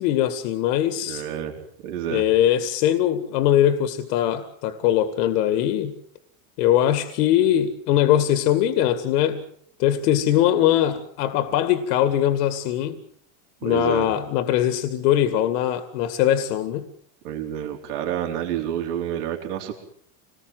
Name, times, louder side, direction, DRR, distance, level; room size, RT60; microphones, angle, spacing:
voice 1, 0.0-1.2 2.1-6.0 6.6-9.4 9.8-13.0 13.6-16.9, left 11 dB, 90° left, 2.2 m, -21 dB
voice 2, 1.1-1.5 1.8-2.2 13.6-14.1 17.2-19.8, right 10 dB, 90° right, 4.4 m, -29 dB
27.5 x 20.0 x 7.8 m
cardioid pair, 170°, 46 cm